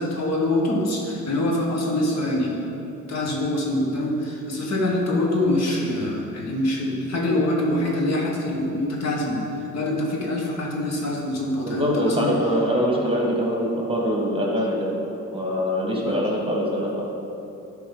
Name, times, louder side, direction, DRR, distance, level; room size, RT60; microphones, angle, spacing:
voice 1, 0.0-2.7 3.1-12.4 16.0-16.2, left 1 dB, 60° left, -2 dB, 1.5 m, -24 dB
voice 2, 11.6-14.9 15.3-17.0, equal, 20° right, -2 dB, 1.6 m, -23 dB
9.9 x 5.3 x 4.0 m, 2.9 s
cardioid pair, 90°, 30 cm